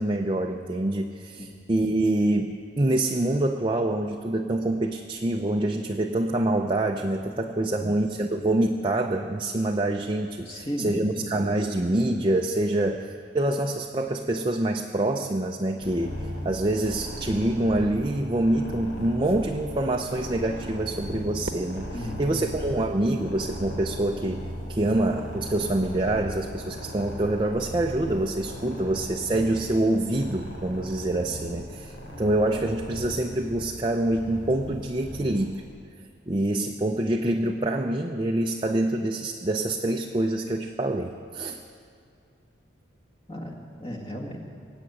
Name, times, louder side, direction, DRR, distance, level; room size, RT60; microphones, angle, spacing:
voice 1, 0.0-35.6 36.3-41.6, right 1 dB, 25° right, 3 dB, 0.5 m, -26 dB
voice 2, 10.5-11.3 21.9-22.8 43.3-44.4, equal, 30° left, 0 dB, 1.8 m, -36 dB
sound 1, 15.8-35.5, equal, 85° left, 4.0 m, -38 dB
Fireworks, 21.4-23.8, right 2 dB, 65° right, 1.0 m, -42 dB
19.5 x 8.0 x 8.6 m, 2.3 s
head